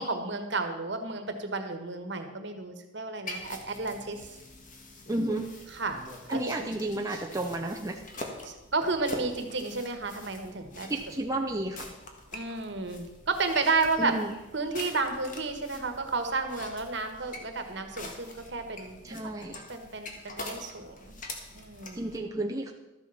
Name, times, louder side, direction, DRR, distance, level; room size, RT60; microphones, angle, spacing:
voice 1, 0.0-4.3 5.8-6.0 6.3-6.7 8.4-11.0 12.3-14.1 14.5-19.3 19.7-21.1 21.5-22.0, right 3 dB, 60° right, 6 dB, 1.5 m, -32 dB
sound 1, 3.3-22.2, left 2 dB, 40° left, 1.6 m, -45 dB
voice 2, 5.1-5.5 6.3-8.0 10.9-11.9 14.0-14.3 19.0-19.6 21.9-22.7, right 1 dB, 15° right, 2 dB, 0.7 m, -32 dB
12.5 x 7.9 x 5.7 m, 1.0 s
head